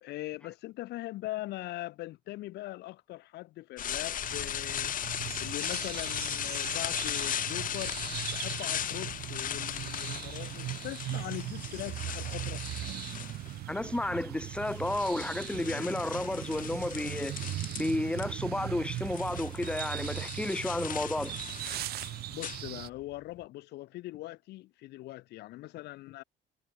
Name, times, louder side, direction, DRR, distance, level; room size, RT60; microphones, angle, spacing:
voice 1, 0.0-5.0 5.4-12.6 22.3-26.2, left 17 dB, 80° left, 1.4 m, -41 dB
sound 1, 3.8-13.7 14.5-18.3 18.5-23.1, left 10 dB, 55° left, 2.5 m, -37 dB
sound 2, 4.2-22.9, right 15 dB, 70° right, 0.9 m, -39 dB
voice 2, 13.7-17.4 17.8-21.3, left 1 dB, 5° left, 1.5 m, -32 dB
cardioid pair, 110°, 17 cm